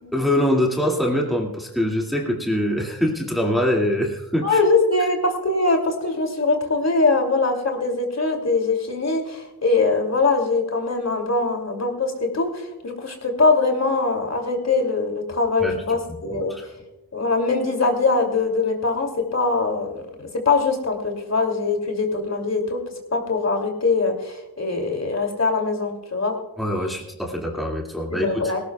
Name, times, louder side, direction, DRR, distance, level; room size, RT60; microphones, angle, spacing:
voice 1, 0.1-4.6 15.6-15.7 16.3-16.7 26.6-28.5, left 1 dB, ahead, -1 dB, 2.2 m, -23 dB
voice 2, 4.4-16.5 17.1-20.0 20.4-22.8 23.1-26.3 28.1-28.6, left 3 dB, 40° left, 3 dB, 2.7 m, -22 dB
19.0 x 17.5 x 2.3 m, 0.98 s
wide cardioid pair, 95°, 41 cm